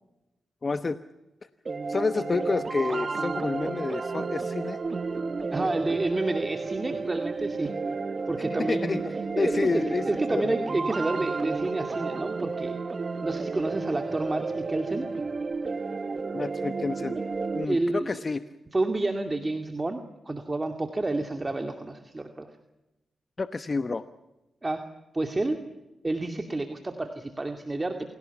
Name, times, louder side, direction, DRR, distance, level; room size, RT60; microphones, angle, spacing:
voice 1, 0.6-1.0 1.9-4.8 8.6-10.1 10.3-10.5 16.3-17.2 17.5-18.4 23.4-24.1, left 3 dB, 40° left, 12 dB, 1.0 m, -29 dB
sound 1, 1.7-17.7, right 4 dB, 45° right, 1.4 m, -32 dB
voice 2, 5.5-7.7 8.3-9.0 9.3-12.8 13.2-15.1 17.6-18.2 18.7-20.0 20.3-22.5 24.6-24.8 25.1-25.6 26.0-28.1, right 2 dB, 30° right, 6 dB, 2.3 m, -29 dB
27.5 x 17.5 x 7.2 m, 0.98 s
cardioid pair, 55°, 0 cm